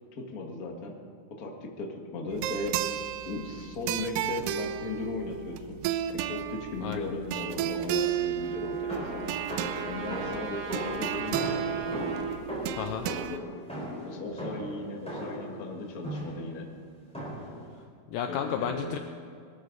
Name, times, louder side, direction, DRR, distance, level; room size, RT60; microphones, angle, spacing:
voice 1, 0.1-1.0 1.4-2.8 3.2-5.8 6.1-9.3 9.8-12.1 13.2-13.4 14.0-16.7 18.3-19.0, left 2 dB, 65° left, 1 dB, 0.8 m, -37 dB
sound 1, 2.3-13.4, right 10 dB, 85° right, 1.9 m, -33 dB
Trumpet, 7.9-12.4, right 5 dB, 65° right, 3.3 m, -40 dB
sound 2, 8.9-15.5 16.0-16.5 17.1-17.6, equal, ahead, 4.1 m, -37 dB
voice 2, 12.8-13.1 18.1-19.0, left 8 dB, 85° left, 5 dB, 2.0 m, -32 dB
22.5 x 13.5 x 4.0 m, 2.4 s
omnidirectional pair, 4.6 m